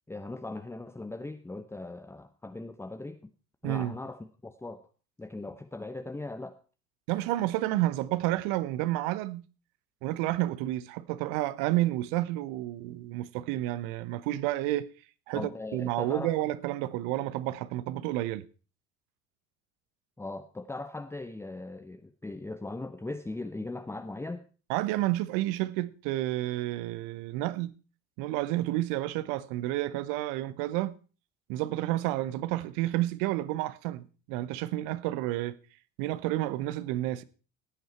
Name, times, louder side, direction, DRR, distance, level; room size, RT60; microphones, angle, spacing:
voice 1, 0.1-3.3 3.6-4.9 5.2-6.6 15.3-16.3 20.2-24.5, left 2 dB, 5° left, 0.8 m, -39 dB
voice 2, 7.1-9.4 10.0-14.9 15.3-18.4 24.7-27.7 28.2-31.0 31.5-35.5 36.0-37.2, right 15 dB, 60° right, 1.0 m, -30 dB
16.0 x 9.3 x 4.5 m
figure-of-eight pair, 65°, 39 cm